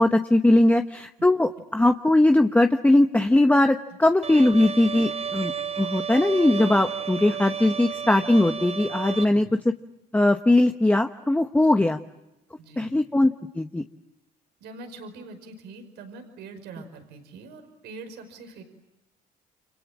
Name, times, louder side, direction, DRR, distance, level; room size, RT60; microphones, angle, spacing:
voice 1, 0.0-5.5 5.8-9.5 10.1-12.0 12.8-13.8, left 1 dB, 10° left, 5 dB, 1.1 m, -20 dB
Bowed string instrument, 4.2-9.2, right 7 dB, 35° right, 0.9 m, -32 dB
voice 2, 9.2-9.5 11.7-11.9 12.6-12.9 14.6-18.6, right 3 dB, 80° right, 7 dB, 5.3 m, -43 dB
29.5 x 26.5 x 7.4 m, 0.97 s
cardioid pair, 110°, 17 cm